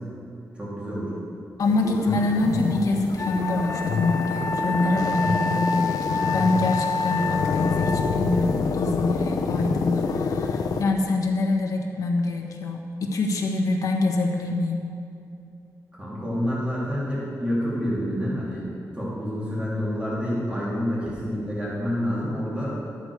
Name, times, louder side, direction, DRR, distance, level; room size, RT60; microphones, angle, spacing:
voice 1, 0.5-1.1 16.0-18.7 18.9-22.7, equal, 20° right, -8 dB, 2.8 m, -28 dB
sound 1, 1.6-10.8, left 5 dB, 85° left, 0.8 m, -27 dB
voice 2, 1.6-14.8, left 2 dB, 65° left, 1 dB, 1.3 m, -25 dB
Wind instrument woodwind instrument, 3.2-8.1, left 3 dB, 40° left, 1.1 m, -28 dB
12.5 x 8.4 x 4.8 m, 2.7 s
wide cardioid pair, 160°, 6 cm